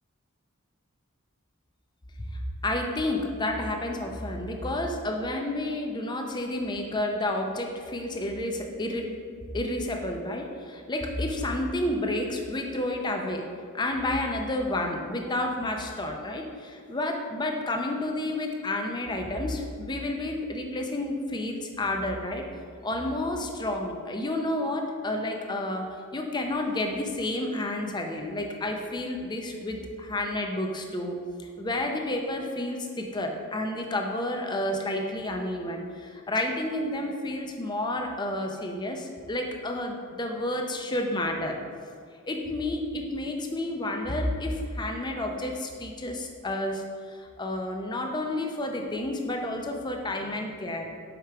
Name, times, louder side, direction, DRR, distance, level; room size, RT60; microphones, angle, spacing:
voice 1, 2.3-9.1 9.5-13.4 13.7-22.4 22.8-25.9 26.1-31.2 31.6-41.6 42.2-50.9, left 1 dB, 20° left, 2 dB, 0.5 m, -30 dB
5.0 x 4.5 x 4.5 m, 2.2 s
head